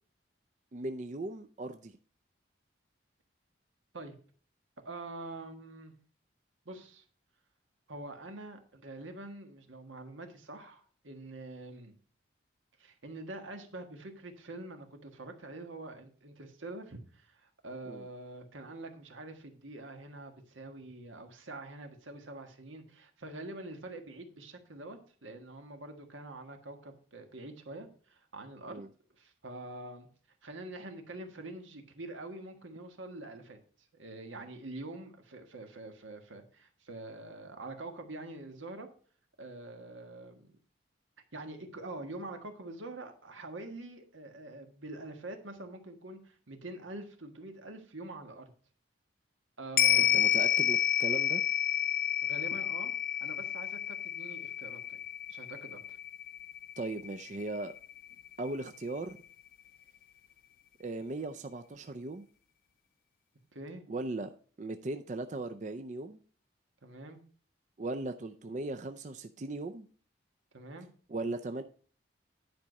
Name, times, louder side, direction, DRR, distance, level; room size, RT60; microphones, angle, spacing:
voice 1, 0.7-2.0 17.9-18.0 28.7-28.9 49.9-51.4 56.8-57.7 58.4-59.2 60.8-62.2 63.9-64.3 64.6-66.2 67.8-69.9 71.1-71.6, right 2 dB, 40° right, 8 dB, 0.4 m, -38 dB
voice 2, 4.8-5.9 6.6-7.0 7.9-11.9 12.8-28.8 29.2-30.1 30.4-33.6 33.9-38.9 39.4-40.6 41.3-48.5 49.6-50.3 52.2-52.9 53.2-55.0 55.3-56.0 63.5-63.8 66.8-67.2 70.5-70.9, right 2 dB, 85° right, 5 dB, 1.6 m, -45 dB
sound 1, 49.8-58.3 58.7-58.8, left 11 dB, 45° left, 0.5 m, -30 dB
10.5 x 4.8 x 5.3 m, 0.44 s
head